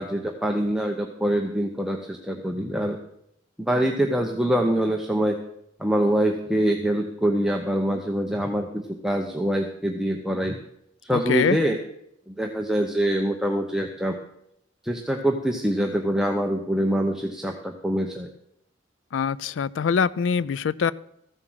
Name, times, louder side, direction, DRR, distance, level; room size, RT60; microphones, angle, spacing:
voice 1, 0.0-3.0 3.6-5.4 5.8-10.6 11.0-11.8 12.3-14.2 14.8-18.3, right 1 dB, 5° right, 2 dB, 0.8 m, -24 dB
voice 2, 11.1-11.6 19.1-20.9, left 6 dB, 90° left, 19 dB, 0.4 m, -23 dB
14.5 x 7.6 x 6.2 m, 0.77 s
head